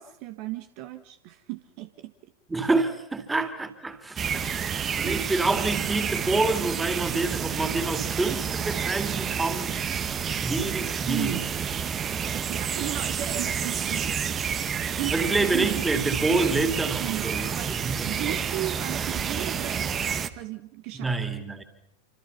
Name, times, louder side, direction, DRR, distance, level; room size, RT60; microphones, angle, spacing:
voice 1, 0.0-2.3 11.1-11.4 12.3-14.6 14.9-15.9 17.0-21.1, right 15 dB, 45° right, 1.5 m, -36 dB
voice 2, 2.5-4.5 4.9-9.9 10.3-11.5 15.1-17.5 17.8-18.4 20.9-21.6, right 3 dB, 10° right, 3.3 m, -27 dB
sound 1, 4.2-20.3, right 7 dB, 25° right, 1.5 m, -29 dB
28.5 x 26.5 x 5.9 m
figure-of-eight pair, 90°, 0 cm